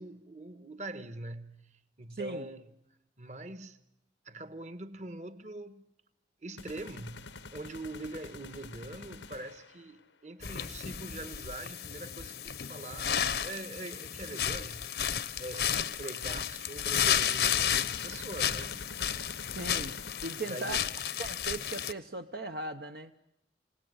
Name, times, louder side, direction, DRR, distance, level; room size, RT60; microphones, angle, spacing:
voice 1, 0.0-2.7 3.2-3.8 4.2-5.8 6.4-14.9 15.4-18.8 20.4-20.8, right 2 dB, 40° right, 1.5 m, -43 dB
voice 2, 2.1-2.5 19.5-20.8 21.2-23.1, right 3 dB, 60° right, 1.0 m, -38 dB
sound 1, 6.6-9.9 16.9-20.9, left 4 dB, 90° left, 1.2 m, -47 dB
sound 2, 10.4-21.9, left 9 dB, 65° left, 1.0 m, -32 dB
28.5 x 18.0 x 9.5 m
head